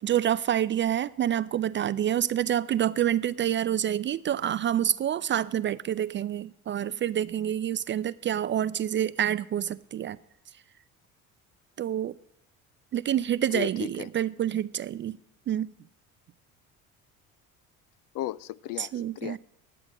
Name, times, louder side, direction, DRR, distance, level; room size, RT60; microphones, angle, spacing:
voice 1, 0.0-10.2 11.8-12.1 12.9-15.2 15.5-15.7 18.8-19.4, right 10 dB, 30° right, 0.4 m, -27 dB
voice 2, 13.5-14.1 18.1-18.9 19.2-19.4, left 15 dB, 50° left, 0.5 m, -35 dB
11.0 x 7.8 x 8.3 m
hypercardioid pair, 65°, 42 cm